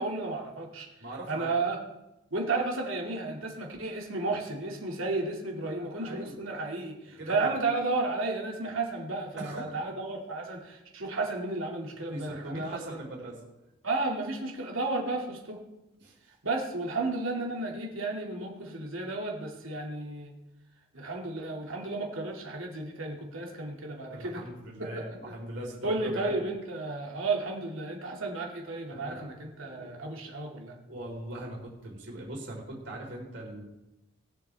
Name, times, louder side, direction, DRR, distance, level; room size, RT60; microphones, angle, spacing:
voice 1, 0.0-0.9 1.3-1.8 2.3-13.0 13.8-15.6 16.4-20.3 20.9-24.4 24.8-24.9 25.8-30.8, right 3 dB, 75° right, 0 dB, 2.3 m, -33 dB
voice 2, 1.0-1.5 5.6-6.4 7.2-7.5 9.4-9.7 12.1-13.4 16.0-16.2 24.1-26.3 28.9-29.3 29.6-30.0 30.9-33.7, right 1 dB, 55° right, -1 dB, 3.9 m, -40 dB
21.0 x 7.7 x 3.4 m, 0.95 s
head